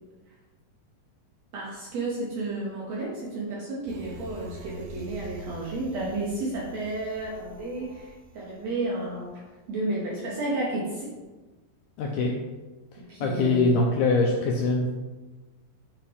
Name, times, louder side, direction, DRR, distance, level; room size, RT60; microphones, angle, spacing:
voice 1, 1.5-9.3 9.7-11.1 13.0-13.8, right 2 dB, 70° right, -4 dB, 1.7 m, -32 dB
sound 1, 3.9-9.5 9.9-10.0, right 2 dB, 90° right, 2.5 m, -45 dB
voice 2, 12.0-12.3 12.9-14.9, left 3 dB, 80° left, 0 dB, 1.8 m, -23 dB
9.6 x 3.5 x 3.4 m, 1.2 s
omnidirectional pair, 4.0 m